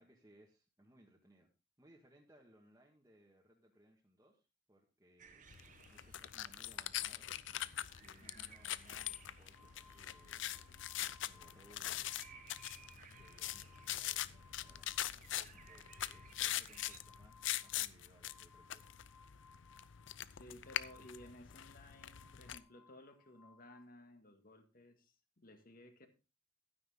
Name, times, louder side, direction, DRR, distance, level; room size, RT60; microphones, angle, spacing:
voice 1, 0.0-1.5 1.8-5.5 5.9-7.3 8.0-10.7 11.0-12.2 13.1-18.9, right 1 dB, 15° right, 1.7 m, -66 dB
sound 1, 5.2-17.0, right 6 dB, 40° right, 1.0 m, -62 dB
sound 2, 5.5-22.6, left 12 dB, 75° left, 0.5 m, -43 dB
sound 3, 8.9-23.9, left 5 dB, ahead, 2.8 m, -66 dB
voice 2, 20.3-26.1, left 1 dB, 50° left, 1.9 m, -57 dB
12.0 x 9.7 x 3.6 m
head